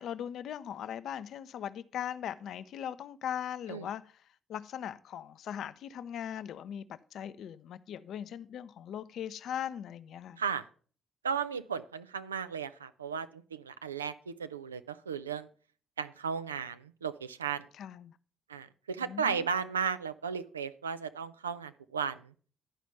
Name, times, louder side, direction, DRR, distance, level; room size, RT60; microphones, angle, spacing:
voice 1, 0.0-4.0 4.5-6.8 7.1-10.4 17.7-18.1 19.0-19.5, left 9 dB, 55° left, 0.5 m, -39 dB
voice 2, 11.2-15.5 16.0-17.6 18.5-22.2, right 6 dB, 85° right, 0.3 m, -35 dB
11.0 x 5.0 x 5.6 m
figure-of-eight pair, 40°, 0 cm